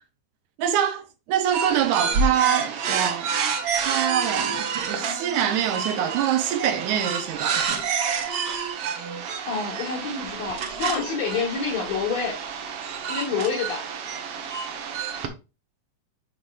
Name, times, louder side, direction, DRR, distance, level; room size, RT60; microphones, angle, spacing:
voice 1, 0.6-3.3 3.9-7.8, right 10 dB, 75° right, 2.1 m, -25 dB
sound 1, 1.5-15.3, right 6 dB, 60° right, 1.6 m, -29 dB
voice 2, 9.5-12.4 13.1-13.8, left 5 dB, 60° left, 2.7 m, -27 dB
11.0 x 4.8 x 2.4 m
omnidirectional pair, 3.8 m